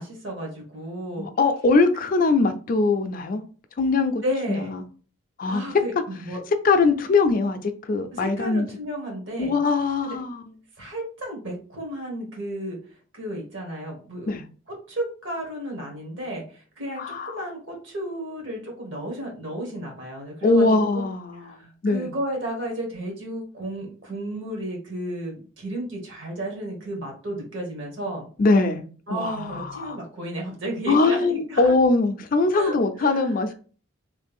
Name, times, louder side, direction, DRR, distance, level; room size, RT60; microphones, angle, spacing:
voice 1, 0.0-1.3 4.2-4.7 5.5-6.4 8.1-9.6 10.0-10.2 10.8-12.8 13.1-14.3 14.9-20.7 20.9-21.0 21.4-28.3 29.1-31.7 32.5-33.3, right 1 dB, 65° right, 1.3 m, -33 dB
voice 2, 1.2-3.4 3.8-4.2 4.5-4.8 5.4-5.6 6.6-8.7 9.4-10.5 14.3-14.4 17.0-17.4 20.4-22.1 28.4-28.8 29.1-30.0 30.9-33.5, left 3 dB, 45° left, 0.4 m, -22 dB
3.2 x 2.4 x 3.5 m
head